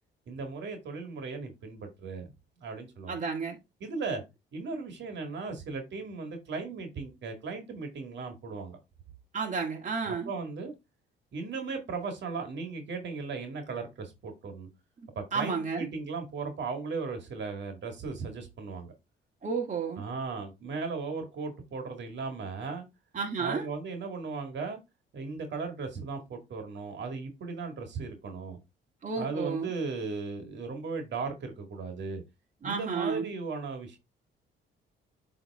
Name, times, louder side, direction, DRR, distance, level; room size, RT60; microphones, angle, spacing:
voice 1, 0.3-2.3 2.6-3.2 3.8-4.2 4.5-8.8 10.0-10.7 11.3-14.7 15.2-18.9 20.0-22.9 23.4-24.8 25.1-28.6 29.2-32.2 32.6-34.0, right 4 dB, 65° right, 1.9 m, -37 dB
voice 2, 3.1-3.6 9.3-10.3 15.3-15.9 19.4-20.0 23.1-23.7 29.0-29.7 32.6-33.3, right 5 dB, 40° right, 1.8 m, -31 dB
8.1 x 3.5 x 3.5 m
cardioid pair, 90°, 20 cm